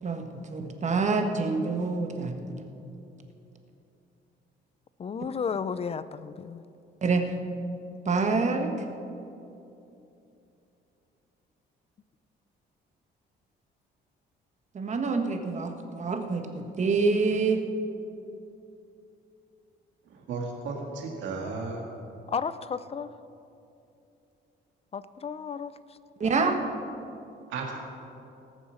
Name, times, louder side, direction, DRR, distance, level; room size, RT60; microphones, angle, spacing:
voice 1, 0.0-2.3 7.0-7.2 8.0-8.7 14.7-17.6 26.2-26.5, right 4 dB, 40° right, 5 dB, 1.4 m, -26 dB
voice 2, 5.0-6.6 22.3-23.1 24.9-25.7 26.2-26.5, left 6 dB, 35° left, 15 dB, 0.4 m, -33 dB
voice 3, 20.1-21.8 27.5-27.8, right 4 dB, 85° right, 0 dB, 2.0 m, -34 dB
18.5 x 7.0 x 6.4 m, 2.7 s
cardioid pair, 105°, 19 cm